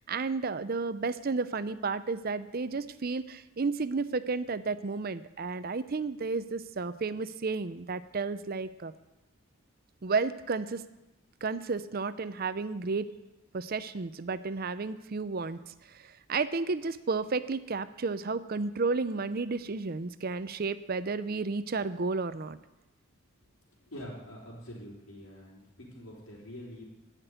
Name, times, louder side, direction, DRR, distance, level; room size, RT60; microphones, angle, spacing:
voice 1, 0.1-8.9 10.0-10.8 11.4-13.1 13.5-22.6, right 4 dB, 45° right, 14 dB, 0.6 m, -32 dB
voice 2, 23.9-26.8, equal, 80° left, -5 dB, 3.7 m, -45 dB
14.5 x 6.0 x 9.2 m, 1.0 s
head